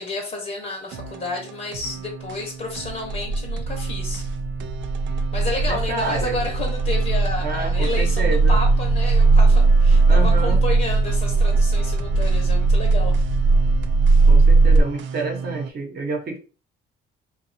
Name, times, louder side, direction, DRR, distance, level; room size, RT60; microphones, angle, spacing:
voice 1, 0.0-4.2 5.3-13.2, left 3 dB, 40° left, 0 dB, 0.9 m, -31 dB
sound 1, 0.9-15.7, right 6 dB, 70° right, 0.4 m, -34 dB
sound 2, 3.1-14.8, right 3 dB, 70° left, 0.7 m, -18 dB
voice 2, 5.7-6.4 7.4-8.5 10.1-10.6 14.3-16.4, right 2 dB, 50° right, 2 dB, 0.9 m, -29 dB
2.6 x 2.3 x 2.6 m, 0.36 s
cardioid pair, 90°, 20 cm